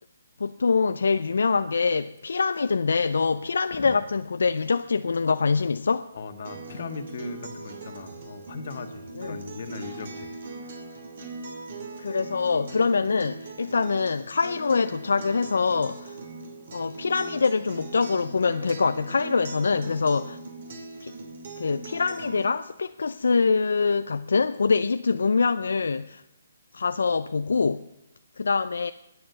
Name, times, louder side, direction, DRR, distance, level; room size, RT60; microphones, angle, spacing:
voice 1, 0.4-6.1 9.2-9.4 12.0-16.2 16.7-20.4 21.0-21.1 21.6-26.2 26.7-27.9 28.4-28.9, left 4 dB, 80° left, 11 dB, 0.5 m, -24 dB
voice 2, 6.1-10.8, left 4 dB, 55° left, 7 dB, 1.6 m, -38 dB
Acoustic guitar, 6.4-22.5, right 3 dB, 50° right, 2.8 m, -40 dB
21.0 x 7.8 x 6.8 m, 0.82 s
hypercardioid pair, 165°, 0 cm